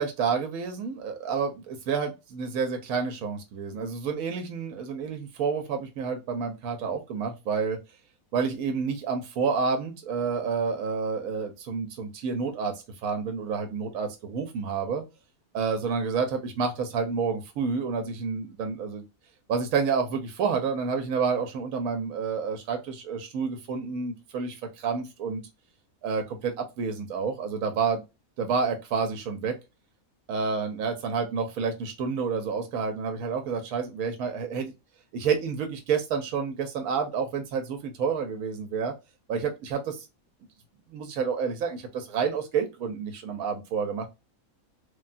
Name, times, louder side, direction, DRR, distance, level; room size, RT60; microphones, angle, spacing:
voice 1, 0.0-7.8 8.3-12.7 13.0-15.0 15.5-19.0 19.5-25.4 26.0-28.0 28.4-29.5 30.3-34.7 35.1-38.9 39.3-40.1 40.9-44.1, right 5 dB, 80° right, 5 dB, 1.1 m, -29 dB
3.3 x 2.3 x 2.4 m, 0.25 s
omnidirectional pair, 1.5 m